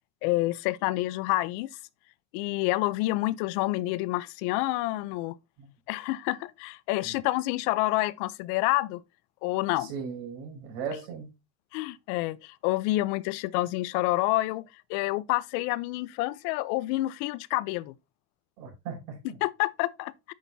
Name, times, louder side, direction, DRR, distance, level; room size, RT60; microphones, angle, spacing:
voice 1, 0.2-1.7 2.3-5.4 5.9-9.0 9.4-9.9 11.7-17.9 19.4-20.3, left 18 dB, 70° left, 0.7 m, -28 dB
voice 2, 9.8-11.3 18.6-19.4, right 6 dB, 80° right, 5.4 m, -37 dB
9.6 x 6.4 x 2.7 m
cardioid pair, 170°, 46 cm